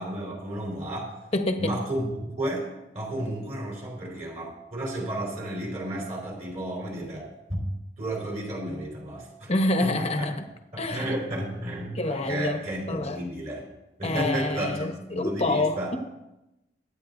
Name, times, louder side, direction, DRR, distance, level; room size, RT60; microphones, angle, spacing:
voice 1, 0.0-1.1 1.6-9.5 9.8-10.3 10.7-13.7 14.0-16.0, right 1 dB, 40° right, -2 dB, 4.2 m, -32 dB
voice 2, 1.3-1.7 9.5-10.5 10.8-11.1 12.0-13.2 14.0-15.9, left 2 dB, 35° left, 5 dB, 1.1 m, -27 dB
24.5 x 8.8 x 2.7 m, 0.93 s
head